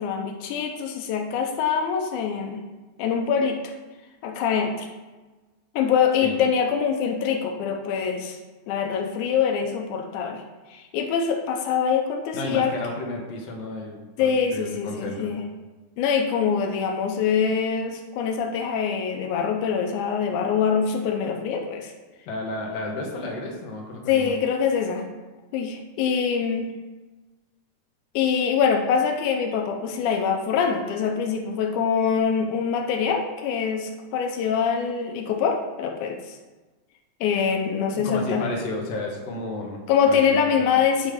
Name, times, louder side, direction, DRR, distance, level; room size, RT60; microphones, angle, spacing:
voice 1, 0.0-2.6 3.0-3.6 4.2-4.9 5.8-8.4 8.7-10.4 10.7-12.7 14.2-15.4 16.0-21.9 24.1-25.0 25.5-26.7 28.2-36.4 37.2-38.4 39.9-41.1, left 6 dB, 90° left, 3 dB, 2.1 m, -24 dB
voice 2, 12.3-15.3 22.3-24.3 38.0-39.8 40.1-40.4 40.7-40.8, left 2 dB, 65° left, 0 dB, 2.0 m, -32 dB
9.1 x 3.1 x 5.0 m, 1.2 s
omnidirectional pair, 3.4 m